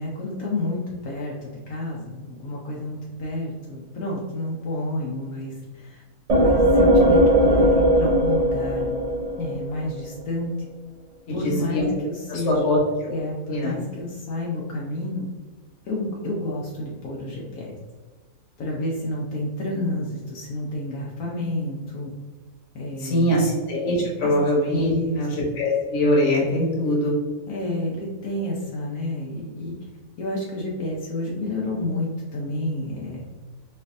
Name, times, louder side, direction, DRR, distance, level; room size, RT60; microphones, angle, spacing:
voice 1, 0.0-6.0 6.3-9.0 9.4-10.5 11.3-12.7 13.1-15.3 15.8-17.7 18.6-22.1 22.7-23.3 24.2-24.3 24.7-25.2 27.5-29.8 30.2-33.3, left 1 dB, 75° left, -3 dB, 1.1 m, -30 dB
sound 1, 6.3-9.9, equal, 75° right, 0.3 m, -18 dB
voice 2, 11.4-11.8 12.3-13.1 13.5-13.7 23.0-27.1, left 1 dB, 55° left, -3 dB, 1.2 m, -22 dB
4.2 x 2.5 x 2.5 m, 1.3 s
omnidirectional pair, 1.5 m